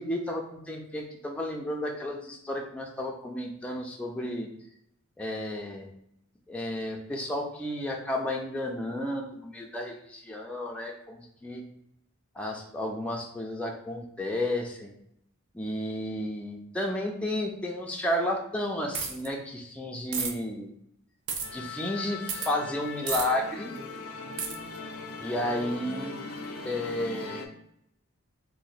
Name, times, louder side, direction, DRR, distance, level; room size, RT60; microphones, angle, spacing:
voice 1, 0.0-4.5 5.2-5.9 6.5-11.6 12.4-14.9 15.5-20.7 21.5-23.7 25.2-26.2 26.6-27.5, left 1 dB, 5° left, 0 dB, 0.3 m, -32 dB
sound 1, 18.9-19.3 20.1-20.3 21.3-21.5 22.3-22.5 23.1-23.3 24.4-24.6, right 5 dB, 60° right, 0.5 m, -31 dB
Musical instrument, 21.4-27.5, left 4 dB, 90° left, 0.5 m, -39 dB
2.9 x 2.1 x 3.9 m, 0.75 s
head